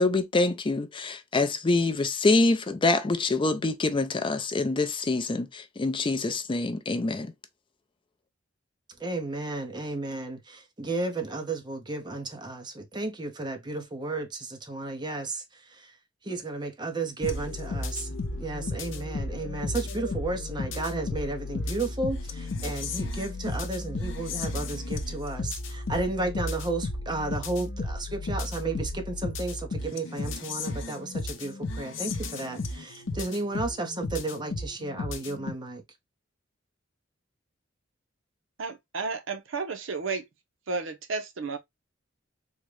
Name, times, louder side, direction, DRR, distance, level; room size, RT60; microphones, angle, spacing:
voice 1, 0.0-7.3, left 3 dB, 25° left, 0.4 m, -25 dB
voice 2, 9.0-15.9 16.2-35.8, right 2 dB, 25° right, 0.8 m, -33 dB
sound 1, 17.2-35.5, left 2 dB, 70° left, 0.6 m, -34 dB
voice 3, 38.6-40.3 40.7-41.6, right 4 dB, 75° right, 0.7 m, -32 dB
3.6 x 2.2 x 3.1 m
head